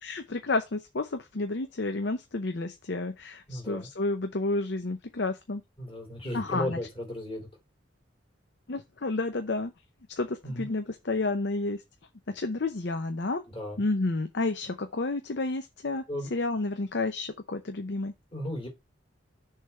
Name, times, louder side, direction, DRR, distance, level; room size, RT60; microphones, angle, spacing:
voice 1, 0.0-5.6 6.3-6.8 8.7-9.7 10.2-11.8 12.3-13.4 13.8-16.0 16.3-18.1, left 2 dB, 60° left, 0.7 m, -30 dB
voice 2, 3.5-3.9 5.8-7.5 10.4-10.7 13.5-13.8 16.1-16.3 18.3-18.7, left 1 dB, 30° left, 3.4 m, -35 dB
6.6 x 3.5 x 5.4 m
head